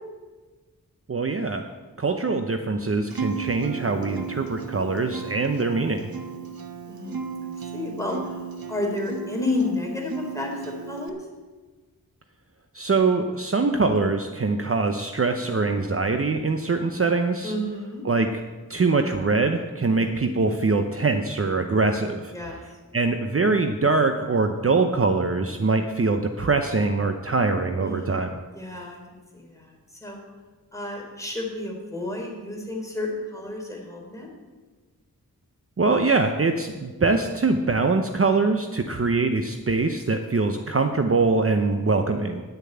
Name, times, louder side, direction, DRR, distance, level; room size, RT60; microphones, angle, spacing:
voice 1, 1.1-1.6 2.0-6.1 12.7-17.5 18.0-18.4 18.7-22.3 22.9-28.3 35.8-42.4, right 3 dB, 40° right, 6 dB, 0.7 m, -23 dB
Acoustic guitar, 3.1-11.1, right 5 dB, 85° right, 1.0 m, -35 dB
voice 2, 6.9-11.2 17.4-18.1 19.9-20.3 22.3-22.6 27.8-28.3 28.5-30.2 30.7-34.3, left 2 dB, 10° left, -1 dB, 3.5 m, -31 dB
10.5 x 6.8 x 8.8 m, 1.3 s
wide cardioid pair, 80°, 35 cm